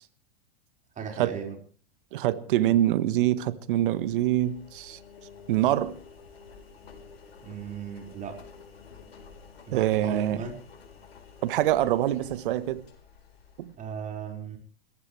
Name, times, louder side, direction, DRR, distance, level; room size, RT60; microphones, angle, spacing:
voice 1, 0.9-1.5 7.4-8.4 9.7-10.6 13.8-14.6, right 7 dB, 25° right, 5.0 m, -36 dB
voice 2, 2.1-5.0 5.5-6.0 9.7-10.4 11.4-12.8 13.6-13.7, right 13 dB, 60° right, 1.4 m, -25 dB
Engine, 3.8-13.8, left 5 dB, 90° left, 4.4 m, -50 dB
29.5 x 15.0 x 3.3 m
hypercardioid pair, 110°, 29 cm